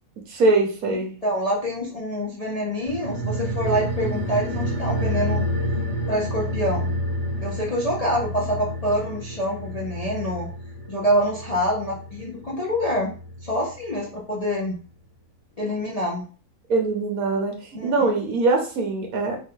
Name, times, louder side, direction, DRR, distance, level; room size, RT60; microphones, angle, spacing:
voice 1, 0.3-1.1 16.7-17.6 17.8-19.4, right 3 dB, 65° right, 1 dB, 1.4 m, -22 dB
voice 2, 1.2-5.4 6.1-6.9 7.4-10.5 10.9-13.2 13.4-14.8 15.6-16.2 17.7-18.1, equal, 35° left, -3 dB, 0.6 m, -26 dB
sound 1, 2.9-13.7 14.0-14.1, equal, ahead, 1.4 m, -29 dB
4.1 x 2.6 x 3.7 m, 0.38 s
omnidirectional pair, 1.6 m